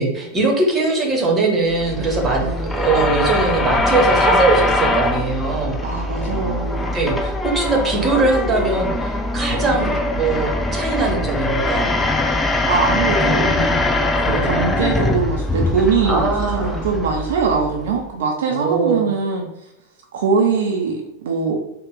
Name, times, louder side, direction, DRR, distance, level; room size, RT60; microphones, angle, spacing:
voice 1, 0.0-5.8 6.9-12.0 14.2-14.4 16.0-16.8 18.5-19.1, right 3 dB, 20° right, 0 dB, 1.0 m, -21 dB
sound 1, 1.7-18.1, left 2 dB, 10° left, 0.4 m, -22 dB
voice 2, 5.8-6.9 12.7-13.8 14.2-19.5 20.1-21.6, right 5 dB, 60° right, 1 dB, 0.5 m, -22 dB
3.8 x 2.1 x 3.7 m, 0.88 s
figure-of-eight pair, 90°, 0 cm